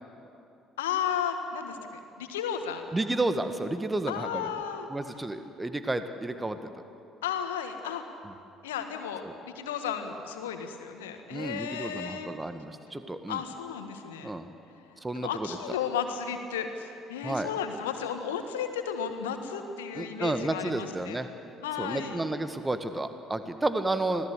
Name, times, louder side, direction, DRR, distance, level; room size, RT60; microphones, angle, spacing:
voice 1, 0.8-1.8 2.2-2.9 4.1-4.9 7.2-8.0 8.6-12.3 13.3-14.3 15.1-21.2 21.6-22.2, left 8 dB, 75° left, 7 dB, 1.7 m, -33 dB
voice 2, 2.9-4.5 4.9-6.8 9.2-9.3 11.3-13.4 14.2-14.5 15.0-15.5 17.2-17.5 19.9-21.3 21.8-24.3, right 2 dB, 15° right, 9 dB, 1.6 m, -31 dB
26.0 x 17.5 x 8.2 m, 2.7 s
figure-of-eight pair, 50°, 0 cm